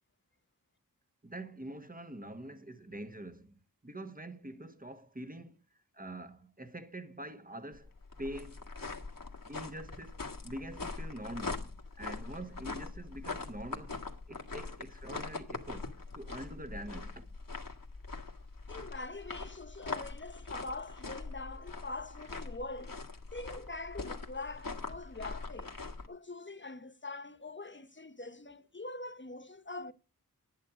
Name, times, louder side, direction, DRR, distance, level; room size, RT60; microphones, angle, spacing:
voice 1, 1.2-5.6 5.9-8.6 9.5-17.3, right 1 dB, 25° right, 1.5 m, -45 dB
sound 1, 7.7-26.1, left 3 dB, 60° left, 1.9 m, -42 dB
voice 2, 18.7-23.0 23.3-25.7 26.1-29.9, left 3 dB, 30° left, 1.1 m, -43 dB
10.5 x 9.4 x 5.0 m
wide cardioid pair, 50°, 37 cm